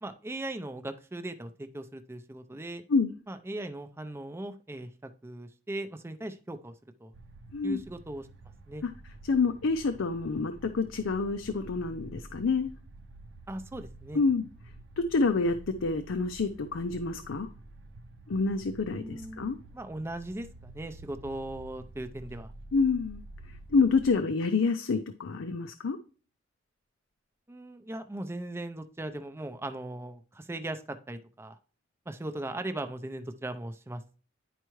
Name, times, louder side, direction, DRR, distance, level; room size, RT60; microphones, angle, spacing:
voice 1, 0.0-2.8 3.3-6.7 7.0-7.1 7.6-8.3 8.7-8.8 13.5-14.2 18.9-22.5 27.5-31.6 32.1-34.2, right 1 dB, 15° right, 8 dB, 0.5 m, -39 dB
sound 1, 7.1-24.2, right 2 dB, 65° right, 0.6 m, -49 dB
voice 2, 9.2-12.7 14.1-14.4 15.0-17.5 18.3-19.6 22.7-23.2 23.7-26.0, left 4 dB, 90° left, 7 dB, 0.5 m, -27 dB
10.0 x 4.6 x 3.1 m, 0.38 s
head